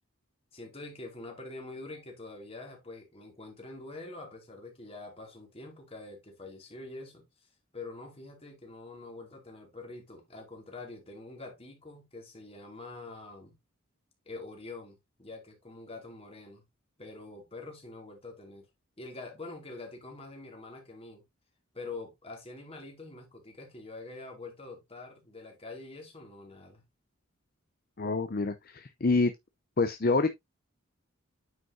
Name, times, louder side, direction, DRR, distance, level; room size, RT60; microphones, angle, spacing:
voice 1, 0.5-13.6 14.2-16.6 17.0-18.7 19.0-21.2 21.7-26.8, left 2 dB, 30° left, 2.6 m, -45 dB
voice 2, 28.0-29.3 29.8-30.3, left 3 dB, 45° left, 0.6 m, -27 dB
9.3 x 5.4 x 2.7 m
head